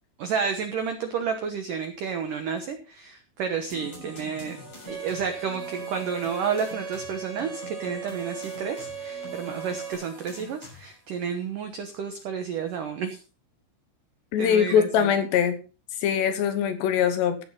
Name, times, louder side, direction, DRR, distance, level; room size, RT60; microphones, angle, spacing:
voice 1, 0.2-4.6 4.9-13.2 14.4-15.1, right 6 dB, 90° right, 6 dB, 1.8 m, -31 dB
sound 1, 3.7-11.1, left 1 dB, 25° left, 7.7 m, -45 dB
Bowed string instrument, 4.9-9.9, right 6 dB, 55° right, 4.5 m, -37 dB
voice 2, 14.3-15.6 16.0-17.4, left 8 dB, 70° left, 8 dB, 3.1 m, -22 dB
15.0 x 9.8 x 3.9 m, 0.35 s
omnidirectional pair, 5.7 m